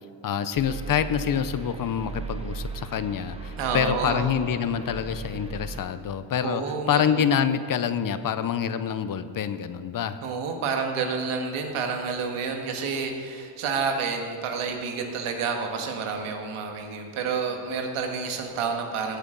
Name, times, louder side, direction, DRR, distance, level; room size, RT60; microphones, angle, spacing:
voice 1, 0.2-10.2, left 8 dB, 45° left, 12 dB, 0.6 m, -26 dB
sound 1, 0.5-5.8, right 4 dB, 10° right, 1.2 m, -37 dB
voice 2, 3.6-4.3 6.4-7.2 10.2-19.2, right 5 dB, 80° right, 3 dB, 1.6 m, -29 dB
16.5 x 8.1 x 3.9 m, 2.4 s
cardioid pair, 110°, 49 cm